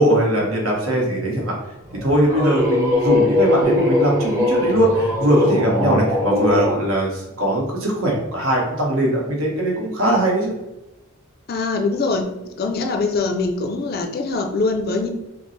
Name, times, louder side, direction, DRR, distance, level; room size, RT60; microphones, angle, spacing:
voice 1, 0.0-1.5 2.0-10.5, right 1 dB, 70° right, -2 dB, 1.2 m, -20 dB
sound 1, 1.9-6.8, left 2 dB, 15° right, 0.7 m, -21 dB
voice 2, 11.5-12.3 12.6-15.1, left 3 dB, 45° left, 5 dB, 0.4 m, -23 dB
5.1 x 2.0 x 3.1 m, 0.98 s
head